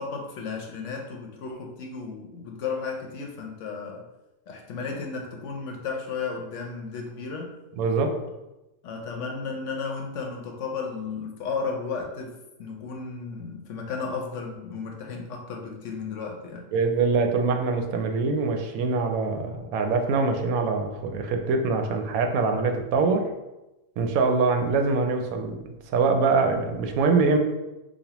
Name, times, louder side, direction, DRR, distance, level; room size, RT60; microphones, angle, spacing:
voice 1, 0.0-4.0 4.5-7.5 8.8-16.7, left 4 dB, 65° left, 2 dB, 0.9 m, -34 dB
voice 2, 7.8-8.1 16.7-23.2 24.0-25.6 25.9-27.4, right 4 dB, 85° right, 5 dB, 1.0 m, -24 dB
5.1 x 2.3 x 2.9 m, 0.99 s
omnidirectional pair, 1.5 m